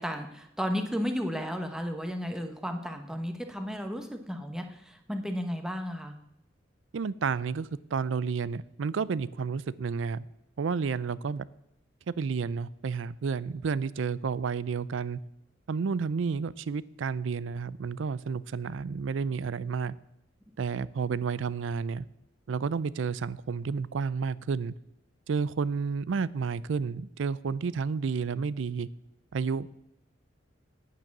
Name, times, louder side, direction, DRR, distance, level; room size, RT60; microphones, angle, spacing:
voice 1, 0.0-6.2, equal, 5° right, 5 dB, 1.1 m, -33 dB
voice 2, 6.9-10.3 10.6-11.5 12.1-15.2 15.7-20.0 20.6-22.1 22.5-24.7 25.3-28.9 29.3-29.7, right 5 dB, 70° right, 19 dB, 0.4 m, -31 dB
9.6 x 9.0 x 6.0 m, 0.83 s
head